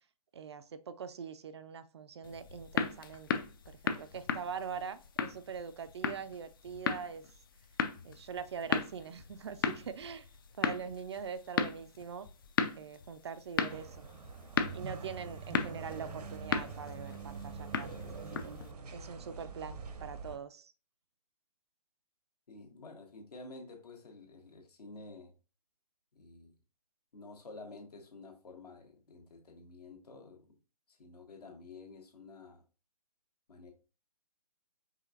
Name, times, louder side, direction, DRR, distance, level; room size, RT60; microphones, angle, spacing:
voice 1, 0.3-7.2 8.0-10.3 10.6-12.3 12.7-14.1 14.7-18.5 18.9-20.7, right 6 dB, 45° right, 0.4 m, -43 dB
sound 1, 2.2-18.7, left 6 dB, 35° left, 0.4 m, -37 dB
sound 2, 13.7-20.4, right 4 dB, 75° right, 0.8 m, -44 dB
voice 2, 22.5-25.3 26.1-26.5 27.1-30.5 30.9-32.6 33.5-33.7, left 3 dB, 75° left, 1.5 m, -51 dB
5.0 x 3.6 x 2.7 m
hypercardioid pair, 145°, 20 cm